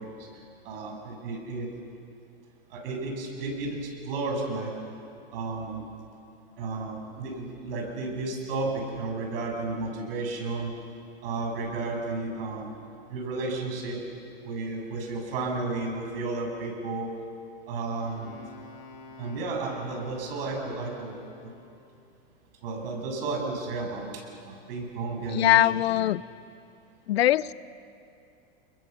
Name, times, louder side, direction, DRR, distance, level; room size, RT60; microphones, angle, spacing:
voice 1, 0.6-1.7 2.7-4.7 5.3-5.9 6.6-10.7 11.2-12.7 13.1-14.0 14.4-17.1 17.7-18.4 19.2-21.1 22.6-25.8, right 3 dB, 70° right, 1 dB, 7.5 m, -32 dB
Wind instrument woodwind instrument, 18.0-21.7, left 3 dB, 70° left, 5.2 m, -48 dB
voice 2, 25.3-26.2 27.1-27.5, left 14 dB, 90° left, 19 dB, 0.7 m, -22 dB
29.5 x 22.0 x 7.3 m, 2.5 s
supercardioid pair, 130°, 30 cm